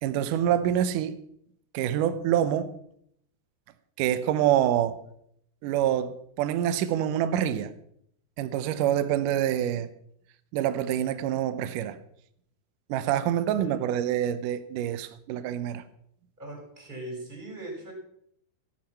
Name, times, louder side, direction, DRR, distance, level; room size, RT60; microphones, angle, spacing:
voice 1, 0.0-1.2 1.7-2.8 4.0-5.0 5.6-7.7 8.4-9.9 10.5-12.0 12.9-15.8, right 11 dB, 80° right, 2.0 m, -26 dB
voice 2, 13.0-13.8 16.4-17.9, right 2 dB, 10° right, 3.8 m, -41 dB
13.5 x 9.2 x 5.7 m
omnidirectional pair, 4.6 m